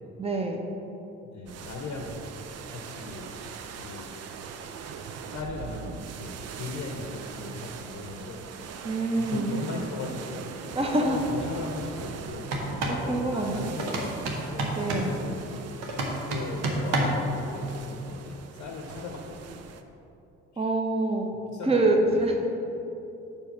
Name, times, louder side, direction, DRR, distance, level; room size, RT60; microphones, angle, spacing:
voice 1, 0.2-0.6 8.8-9.6 10.7-11.2 12.9-13.8 14.8-15.1 20.6-21.3 21.6-22.4, right 2 dB, 15° right, 2 dB, 0.9 m, -26 dB
voice 2, 1.2-2.2 2.7-3.5 3.8-4.1 5.3-8.4 8.8-8.9 9.2-10.5 10.9-12.8 13.0-14.2 14.5-15.6 16.1-19.7 20.5-20.7 21.5-22.4, left 3 dB, 50° left, 1 dB, 0.8 m, -38 dB
sound 1, 1.5-19.8, right 6 dB, 45° right, 0.5 m, -41 dB
sound 2, 12.4-13.0 13.8-15.1 15.8-17.3, right 1 dB, 80° right, 0.9 m, -29 dB
5.2 x 4.5 x 5.9 m, 2.9 s
hypercardioid pair, 45°, 35 cm